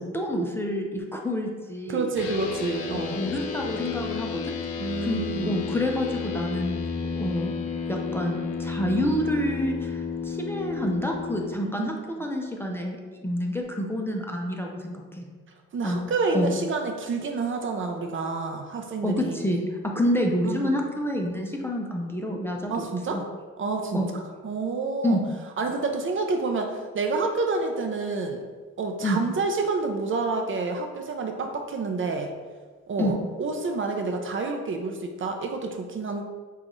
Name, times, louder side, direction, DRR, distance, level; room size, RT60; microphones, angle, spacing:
voice 1, 0.0-2.1 2.9-4.5 5.0-6.7 7.2-7.5 7.9-15.3 15.8-16.0 16.3-16.5 19.0-22.9 23.1-23.2 23.9-24.1 25.0-25.2 29.0-29.2 33.0-33.2, equal, 10° left, 0 dB, 0.5 m, -28 dB
voice 2, 1.9-3.3 4.8-5.6 11.6-11.9 15.7-19.6 20.4-20.7 22.7-23.2 23.6-25.2 25.6-28.4 28.8-32.3 32.9-36.2, right 3 dB, 40° right, 4 dB, 0.5 m, -28 dB
sound 1, 2.2-11.5, left 5 dB, 80° left, 0.6 m, -32 dB
6.3 x 2.4 x 3.0 m, 1.4 s
cardioid pair, 90°, 30 cm